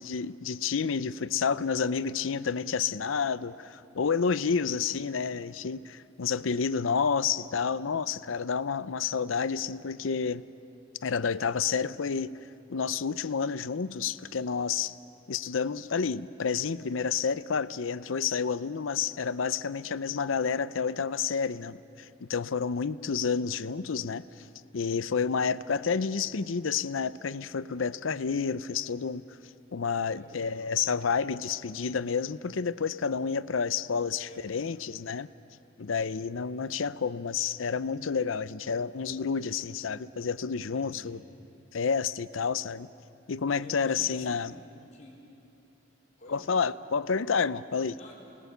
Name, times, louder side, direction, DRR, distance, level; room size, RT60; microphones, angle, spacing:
voice 1, 0.0-10.4 11.0-12.4 12.7-15.0 15.3-24.4 24.7-29.2 29.7-35.3 35.8-41.2 41.7-42.9 43.3-44.6 46.3-48.0, left 6 dB, 90° left, 15 dB, 0.6 m, -30 dB
voice 2, 4.5-5.4 24.7-25.1 30.1-30.7 34.2-34.8 40.5-41.2 43.6-45.1 46.2-46.4 47.9-48.1, left 1 dB, 40° left, -3 dB, 3.8 m, -52 dB
30.0 x 20.0 x 6.8 m, 2.8 s
head